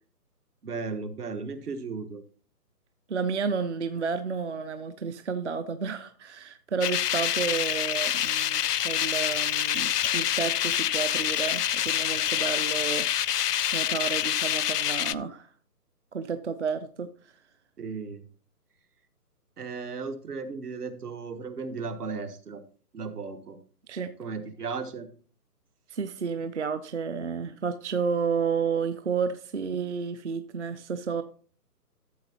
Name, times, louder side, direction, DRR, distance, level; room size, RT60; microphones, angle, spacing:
voice 1, 0.6-2.2 17.8-18.3 19.6-22.6 22.9-23.6 24.2-25.1, right 4 dB, 70° right, 9 dB, 1.4 m, -35 dB
voice 2, 3.1-13.1 13.5-15.5 16.1-17.3 23.9-24.1 25.9-31.2, right 6 dB, 50° right, 11 dB, 0.5 m, -31 dB
sound 1, 6.8-15.1, left 11 dB, 75° left, 0.5 m, -27 dB
13.0 x 7.3 x 2.9 m, 0.42 s
hypercardioid pair, 160°, 48 cm